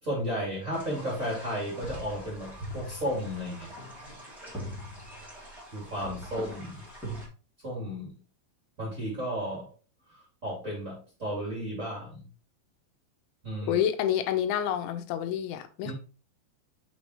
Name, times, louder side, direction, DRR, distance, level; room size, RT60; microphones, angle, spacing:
voice 1, 0.0-3.7 5.7-6.8 7.6-8.1 8.8-9.7 10.1-12.3 13.4-13.8 15.8-15.9, equal, 25° right, 2.2 m, -33 dB
way timpano, 0.7-7.3, equal, ahead, 1.1 m, -42 dB
voice 2, 13.7-15.9, left 10 dB, 85° left, 3.1 m, -28 dB
6.0 x 5.7 x 3.0 m
omnidirectional pair, 5.3 m